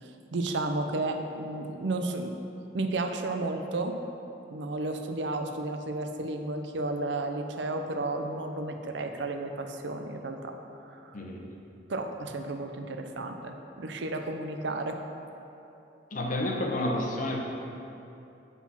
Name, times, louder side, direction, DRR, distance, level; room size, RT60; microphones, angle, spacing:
voice 1, 0.0-2.3 2.7-4.0 4.5-10.6 10.8-11.1 11.9-15.0, right 2 dB, 75° right, 5 dB, 0.6 m, -32 dB
voice 2, 11.1-11.4 16.1-17.4, left 1 dB, 45° left, 0 dB, 0.9 m, -30 dB
8.2 x 4.1 x 5.7 m, 2.9 s
head